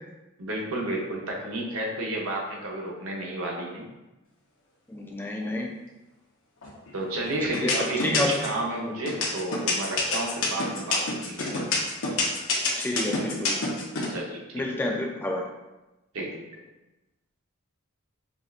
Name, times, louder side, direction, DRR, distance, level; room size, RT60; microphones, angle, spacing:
voice 1, 0.4-3.9 6.9-11.5 14.1-14.6 16.1-16.6, right 1 dB, 80° right, -2 dB, 0.8 m, -32 dB
voice 2, 4.9-5.7 7.5-8.4 12.8-13.5 14.5-15.4, left 1 dB, 10° left, 0 dB, 0.4 m, -29 dB
sound 1, 6.6-7.1 7.5-8.6 9.1-14.1, left 4 dB, 65° left, 0.8 m, -26 dB
5.1 x 2.5 x 2.4 m, 1.0 s
head